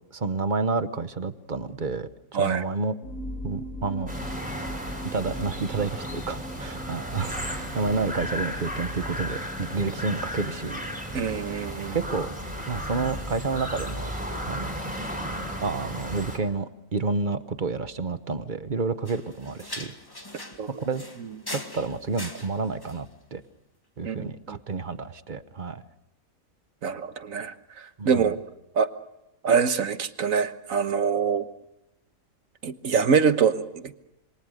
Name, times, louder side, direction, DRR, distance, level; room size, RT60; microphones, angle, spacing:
voice 1, 0.1-3.0 3.4-4.1 5.1-10.8 11.9-12.3 12.7-14.1 14.5-14.7 15.6-19.9 20.8-21.0 21.5-23.4 24.0-25.8 28.0-28.3, right 4 dB, 35° right, 12 dB, 1.1 m, -30 dB
sound 1, 3.0-11.8, equal, 80° left, 3.1 m, -40 dB
sound 2, 4.1-16.4, equal, 5° right, 4.9 m, -34 dB
voice 2, 11.1-12.0 20.6-20.7 24.0-24.6 26.8-28.4 28.8-28.9 29.4-31.5 32.6-33.9, right 6 dB, 70° right, 10 dB, 1.6 m, -25 dB
sound 3, 19.1-23.1, left 1 dB, 15° left, 2.0 m, -41 dB
27.5 x 23.5 x 6.6 m, 0.92 s
omnidirectional pair, 1.5 m